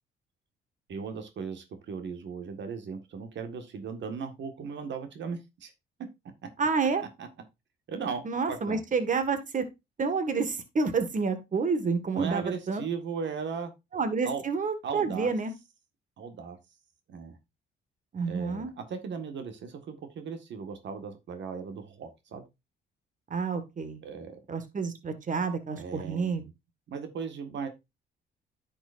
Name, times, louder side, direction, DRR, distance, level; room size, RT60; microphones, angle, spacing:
voice 1, 0.9-5.7 7.2-7.3 7.9-8.2 8.5-8.8 12.1-13.7 14.2-14.4 14.8-15.3 16.2-16.6 17.1-17.4 18.2-22.4 24.0-24.4 25.8-26.5 26.9-27.7, right 6 dB, 65° right, 7 dB, 1.7 m, -37 dB
voice 2, 6.6-7.0 8.2-9.7 10.0-12.8 13.9-15.5 18.1-18.7 23.3-24.0 24.5-26.4, right 4 dB, 40° right, 9 dB, 1.8 m, -29 dB
10.5 x 6.2 x 2.6 m, 0.22 s
cardioid pair, 90°, 20 cm